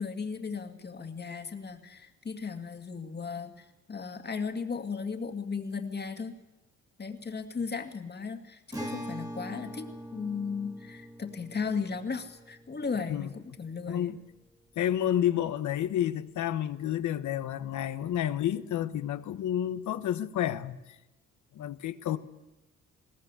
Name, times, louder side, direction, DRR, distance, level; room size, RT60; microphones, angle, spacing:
voice 1, 0.0-6.3 7.0-14.1, left 5 dB, 35° left, 2.2 m, -36 dB
Acoustic guitar, 8.7-14.2, right 1 dB, 10° right, 2.3 m, -43 dB
voice 2, 13.9-14.2 14.8-20.8 21.5-22.2, left 11 dB, 75° left, 1.2 m, -30 dB
21.0 x 18.0 x 8.3 m
cardioid pair, 90°, 30 cm